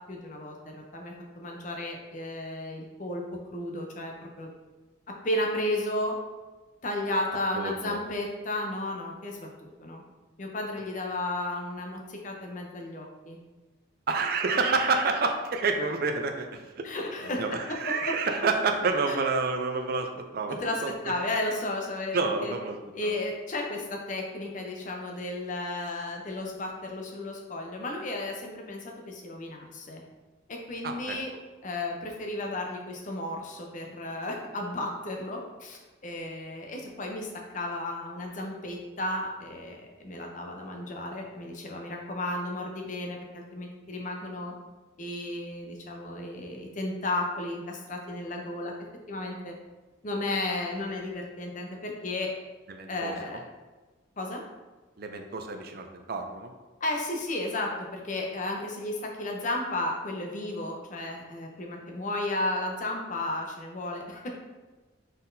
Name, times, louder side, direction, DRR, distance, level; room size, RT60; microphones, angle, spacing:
voice 1, 0.1-3.2 3.5-4.5 5.2-6.2 6.8-10.0 10.4-13.4 16.8-17.5 19.1-19.2 20.5-22.6 22.9-30.0 30.5-31.3 31.6-44.5 45.0-48.7 49.1-49.5 50.0-52.3 52.9-53.4 54.2-54.4 56.8-64.3, left 1 dB, 40° left, 1 dB, 0.6 m, -33 dB
voice 2, 7.5-8.0 14.1-16.9 17.4-21.1 22.1-23.1 30.8-31.2 52.7-53.4 55.0-56.5, right 4 dB, 50° right, 5 dB, 0.4 m, -29 dB
4.0 x 3.8 x 2.6 m, 1.2 s
head